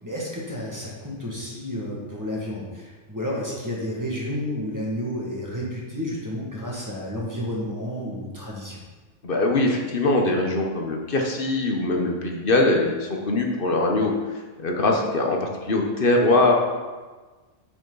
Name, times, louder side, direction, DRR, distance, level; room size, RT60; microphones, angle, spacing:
voice 1, 0.0-8.8, equal, 15° right, -5 dB, 1.9 m, -31 dB
voice 2, 9.2-14.1 14.6-16.5, left 2 dB, 50° left, 1 dB, 1.2 m, -22 dB
9.0 x 6.1 x 4.0 m, 1.3 s
omnidirectional pair, 1.2 m